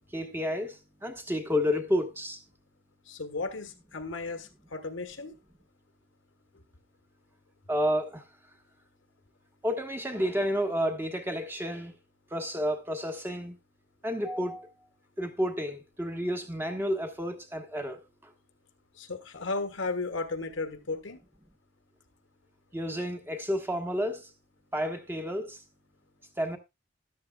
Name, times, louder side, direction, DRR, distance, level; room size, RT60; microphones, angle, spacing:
voice 1, 0.1-2.4 7.7-8.2 9.6-11.9 12.3-13.6 14.0-14.7 15.2-18.3 22.7-24.3 24.7-25.6 26.4-26.6, equal, 10° right, 1.3 m, -31 dB
voice 2, 3.1-5.3 19.0-21.2, left 3 dB, 90° left, 1.5 m, -35 dB
13.5 x 11.5 x 2.3 m
head